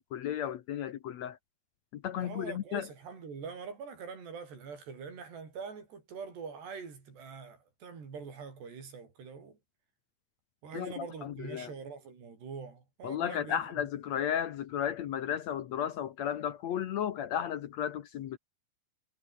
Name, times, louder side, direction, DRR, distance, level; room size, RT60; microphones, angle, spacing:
voice 1, 0.0-1.4 1.9-2.9 10.7-11.7 13.0-18.4, left 9 dB, 80° left, 1.5 m, -34 dB
voice 2, 2.2-9.6 10.6-13.9, right 5 dB, 75° right, 8.1 m, -44 dB
omnidirectional pair, 4.9 m